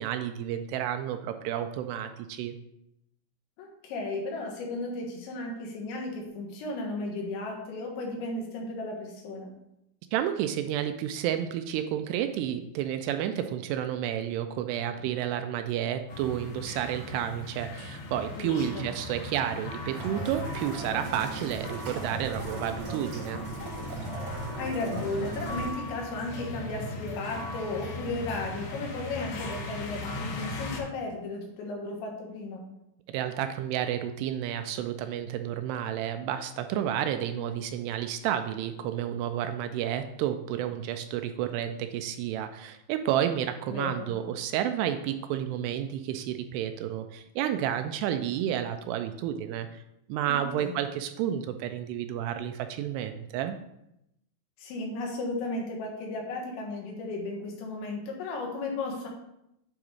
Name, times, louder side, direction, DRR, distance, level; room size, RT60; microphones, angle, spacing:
voice 1, 0.0-2.6 10.1-23.4 33.1-49.8 50.1-53.6, right 10 dB, 85° right, 8 dB, 2.4 m, -31 dB
voice 2, 3.6-9.5 18.3-18.9 24.6-32.6 43.7-44.1 50.3-50.8 54.6-59.1, left 2 dB, 90° left, 0 dB, 3.7 m, -35 dB
sound 1, 16.1-30.8, left 2 dB, 70° left, 2.6 m, -38 dB
sound 2, 19.9-25.7, right 3 dB, 55° right, 3.5 m, -38 dB
8.8 x 3.9 x 4.8 m, 0.83 s
omnidirectional pair, 5.1 m